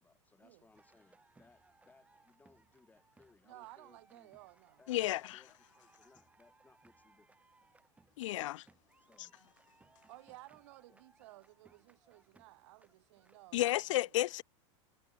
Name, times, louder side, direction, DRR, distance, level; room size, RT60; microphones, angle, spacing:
voice 1, 0.0-4.3 4.8-7.3 9.1-9.4 10.9-11.0, left 3 dB, 10° left, 4.7 m, -66 dB
sound 1, 0.7-13.8, right 3 dB, 10° right, 3.8 m, -68 dB
voice 2, 3.4-4.8 10.1-14.1, right 20 dB, 65° right, 2.1 m, -56 dB
voice 3, 4.9-5.4 8.2-8.6 13.5-14.4, left 16 dB, 75° left, 0.7 m, -32 dB
supercardioid pair, 140°, 16 cm